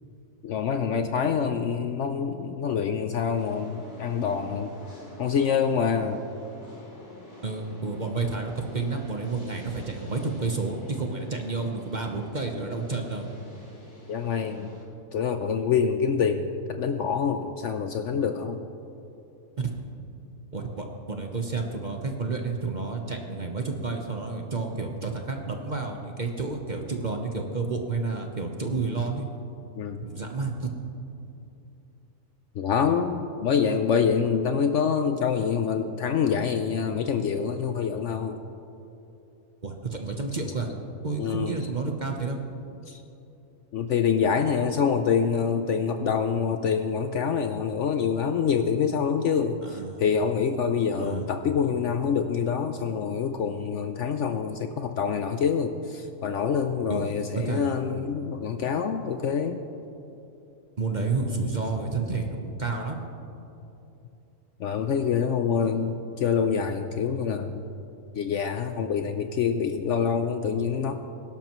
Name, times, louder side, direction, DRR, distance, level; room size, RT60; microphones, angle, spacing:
voice 1, 0.4-4.7 5.2-6.2 14.1-14.8 15.1-18.6 29.8-30.0 32.5-38.4 41.2-41.7 42.9-43.0 43.7-59.6 64.6-67.7 68.1-70.9, left 6 dB, 65° left, 7 dB, 0.8 m, -26 dB
sound 1, 3.3-14.8, left 1 dB, 85° left, 4.2 m, -48 dB
voice 2, 7.4-13.3 19.6-19.7 20.5-29.3 30.0-30.7 33.6-33.8 39.6-40.7 41.0-42.4 49.6-50.0 51.0-51.2 56.9-57.7 60.8-63.0 65.6-65.7, right 4 dB, 35° right, 3 dB, 0.9 m, -30 dB
22.0 x 12.0 x 3.1 m, 2.9 s
omnidirectional pair, 1.6 m